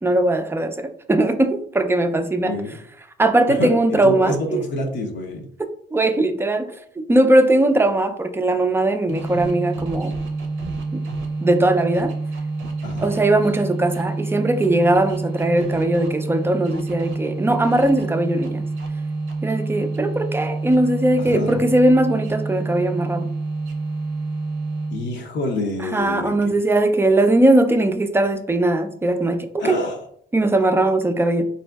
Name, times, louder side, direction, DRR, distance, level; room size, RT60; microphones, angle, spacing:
voice 1, 0.0-2.6 3.2-4.6 5.9-10.1 10.9-11.0 11.4-12.1 13.0-18.6 19.4-23.3 25.8-29.8 30.3-31.4, right 1 dB, 10° right, 7 dB, 0.4 m, -19 dB
voice 2, 2.4-2.8 3.5-3.7 4.0-5.5 12.8-13.1 21.2-21.5 24.9-26.3 29.6-30.0, left 2 dB, 65° left, 1 dB, 0.7 m, -27 dB
sound 1, 9.1-25.2, right 3 dB, 85° right, 0.6 m, -28 dB
4.1 x 2.6 x 2.3 m, 0.62 s
cardioid pair, 90°, 20 cm